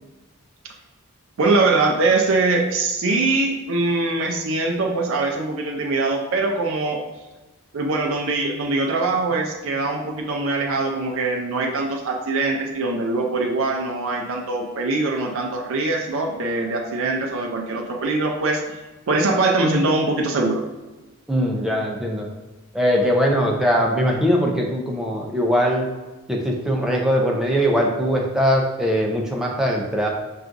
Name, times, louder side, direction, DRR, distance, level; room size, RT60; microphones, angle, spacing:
voice 1, 1.4-7.0 7.7-18.6 19.1-20.6, right 3 dB, 60° right, 1 dB, 0.4 m, -22 dB
voice 2, 21.3-22.3 22.7-25.9 26.3-30.1, equal, ahead, -1 dB, 0.5 m, -21 dB
5.7 x 2.4 x 2.5 m, 1.2 s
head